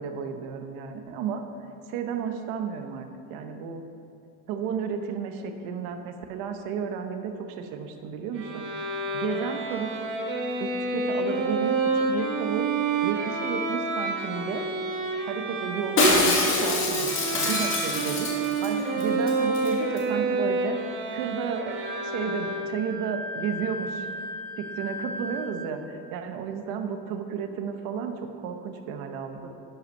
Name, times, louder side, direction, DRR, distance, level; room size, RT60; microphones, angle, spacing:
voice 1, 0.0-1.4 1.9-3.8 4.5-10.1 10.6-12.7 13.0-14.7 15.3-20.8 21.1-21.8 22.0-24.1 24.6-29.5, right 7 dB, 70° right, 6 dB, 0.9 m, -33 dB
Bowed string instrument, 8.3-23.0, right 3 dB, 35° right, 1.2 m, -29 dB
Shatter, 16.0-18.7 19.0-19.1 19.3-19.7 20.0-20.1, left 2 dB, 35° left, 1.6 m, -24 dB
Wind instrument woodwind instrument, 21.8-25.7, left 1 dB, 5° left, 1.1 m, -36 dB
12.0 x 5.6 x 5.4 m, 2.6 s
cardioid pair, 175°, 36 cm